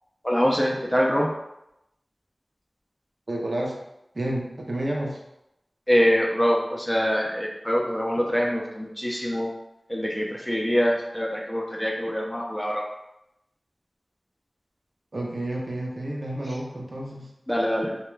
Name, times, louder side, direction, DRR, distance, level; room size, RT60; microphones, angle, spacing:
voice 1, 0.2-1.3 5.9-9.5 9.9-12.8 17.5-18.0, equal, 10° left, -1 dB, 0.4 m, -24 dB
voice 2, 3.3-3.8 4.1-5.2 15.1-17.3, right 1 dB, 60° right, -2 dB, 0.5 m, -30 dB
2.3 x 2.1 x 3.1 m, 0.87 s
wide cardioid pair, 60°, 0 cm